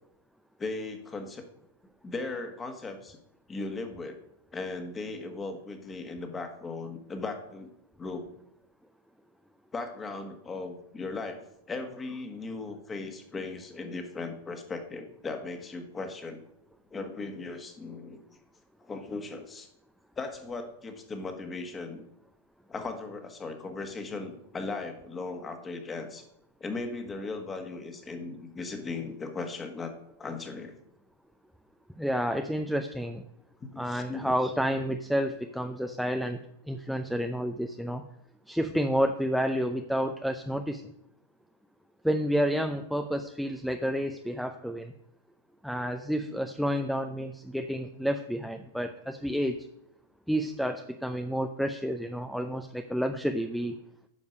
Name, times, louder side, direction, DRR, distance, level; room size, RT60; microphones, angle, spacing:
voice 1, 0.6-1.5 2.0-3.2 3.5-4.2 4.5-7.7 8.0-8.3 9.7-11.4 11.7-16.4 16.9-18.2 18.8-19.7 20.1-22.0 22.7-26.2 26.6-29.9 30.2-30.7 33.7-34.3, left 3 dB, 20° left, 6 dB, 1.6 m, -37 dB
voice 2, 32.0-33.2 33.8-38.0 38.5-40.8 42.0-44.9 45.6-49.7 50.3-53.8, equal, ahead, 7 dB, 0.6 m, -30 dB
9.8 x 5.3 x 6.5 m, 0.77 s
hypercardioid pair, 115°, 0 cm